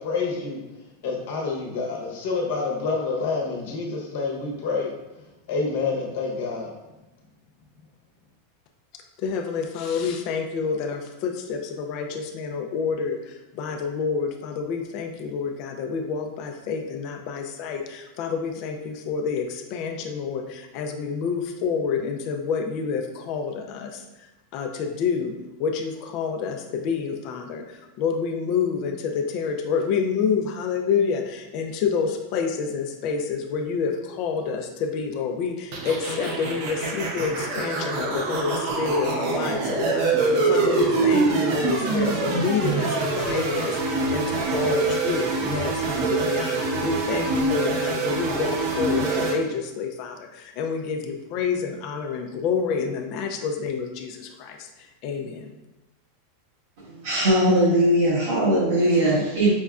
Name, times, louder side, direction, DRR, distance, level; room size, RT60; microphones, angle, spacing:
voice 1, 0.0-6.7, left 4 dB, 70° left, -1 dB, 0.9 m, -28 dB
voice 2, 9.2-55.6, left 5 dB, 50° left, 4 dB, 0.4 m, -28 dB
sound 1, 35.7-49.3, right 3 dB, 55° right, 0.6 m, -25 dB
voice 3, 56.8-59.5, right 1 dB, 75° right, -12 dB, 1.4 m, -20 dB
5.1 x 2.2 x 2.4 m, 1.0 s
supercardioid pair, 145°, 0 cm